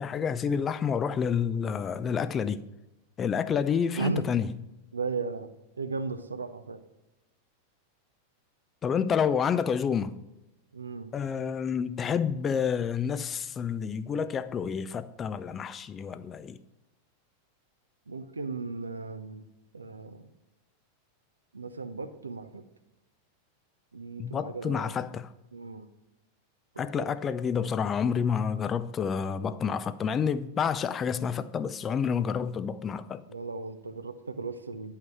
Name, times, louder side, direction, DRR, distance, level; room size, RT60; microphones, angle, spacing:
voice 1, 0.0-2.7 3.2-4.5 8.8-10.2 11.1-16.6 24.2-25.3 26.8-33.2, left 7 dB, 25° left, 0.5 m, -29 dB
voice 2, 4.0-4.3 4.9-5.5 5.8-6.8 10.7-11.1 18.1-19.4 19.7-20.3 21.5-22.6 23.9-24.9 25.5-25.9 26.7-27.1 29.4-29.6 33.3-34.9, right 4 dB, 75° right, 0.7 m, -36 dB
10.5 x 5.7 x 4.7 m
figure-of-eight pair, 90°, 0 cm